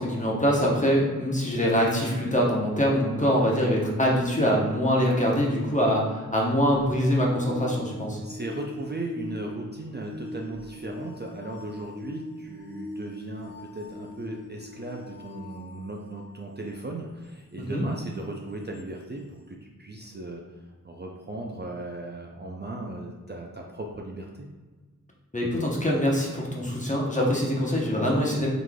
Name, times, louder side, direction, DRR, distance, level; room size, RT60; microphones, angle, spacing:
voice 1, 0.0-8.2 17.7-17.8 25.3-28.5, equal, 20° left, -3 dB, 0.8 m, -24 dB
sound 1, 6.7-16.4 18.7-18.8, left 1 dB, 70° right, 1.1 m, -42 dB
voice 2, 8.2-20.4 20.8-24.5, right 2 dB, 30° right, 0 dB, 0.4 m, -37 dB
3.8 x 3.1 x 2.2 m, 1.3 s
wide cardioid pair, 40°, 33 cm